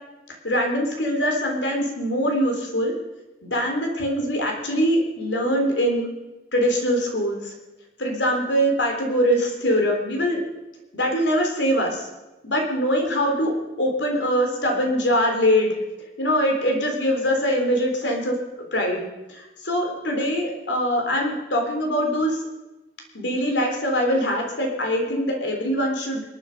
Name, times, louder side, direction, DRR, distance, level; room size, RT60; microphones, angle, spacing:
voice 1, 0.4-2.9 3.4-6.1 6.5-7.5 8.0-10.4 10.9-12.1 12.4-15.7 16.2-18.3 18.7-22.4 23.1-26.2, equal, 90° left, 2 dB, 3.7 m, -23 dB
27.0 x 9.6 x 5.3 m, 1.1 s
head